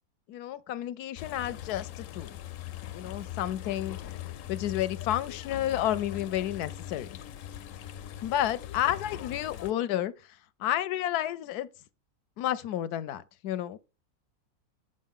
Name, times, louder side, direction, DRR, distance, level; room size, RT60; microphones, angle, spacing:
voice 1, 0.3-2.3 2.9-4.0 4.5-7.1 8.2-10.1 10.6-11.7 12.4-13.8, left 12 dB, 85° left, 1.2 m, -31 dB
sound 1, 1.2-9.7, left 12 dB, 70° left, 0.9 m, -41 dB
8.1 x 6.5 x 3.6 m
omnidirectional pair, 1.6 m